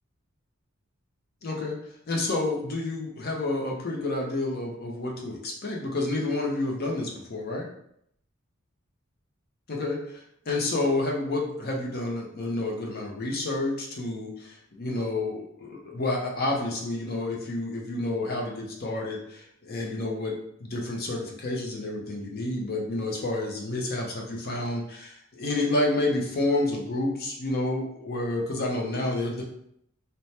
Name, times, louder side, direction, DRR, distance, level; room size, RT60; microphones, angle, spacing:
voice 1, 1.4-1.8 2.1-7.7 9.7-10.2 10.5-29.4, left 2 dB, 45° left, -1 dB, 0.6 m, -29 dB
2.7 x 2.1 x 3.2 m, 0.72 s
head